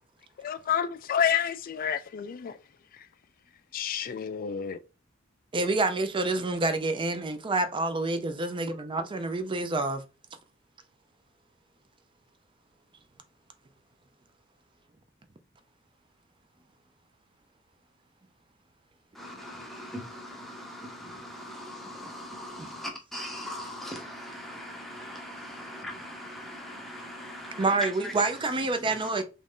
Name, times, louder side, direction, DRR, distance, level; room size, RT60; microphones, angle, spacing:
voice 1, 0.4-2.6 3.7-4.8, left 8 dB, 45° left, 0.3 m, -29 dB
voice 2, 5.5-10.0 22.6-22.7 27.6-29.2, right 3 dB, 25° right, 0.4 m, -28 dB
voice 3, 19.1-29.2, left 1 dB, ahead, 0.8 m, -41 dB
3.1 x 2.6 x 3.5 m
head